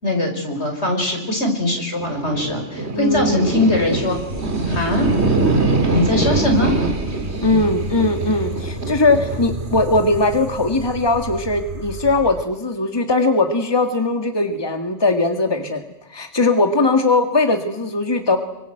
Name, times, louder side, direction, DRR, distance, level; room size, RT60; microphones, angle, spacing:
voice 1, 0.0-4.2 4.7-5.1 5.9-6.8, left 1 dB, 70° left, 3 dB, 5.4 m, -21 dB
sound 1, 2.0-12.4, right 2 dB, 70° right, 2.8 m, -24 dB
voice 2, 2.9-3.5 7.4-15.8 16.1-18.4, left 2 dB, 20° left, 5 dB, 1.9 m, -19 dB
27.0 x 24.5 x 7.9 m, 0.89 s
omnidirectional pair, 1.2 m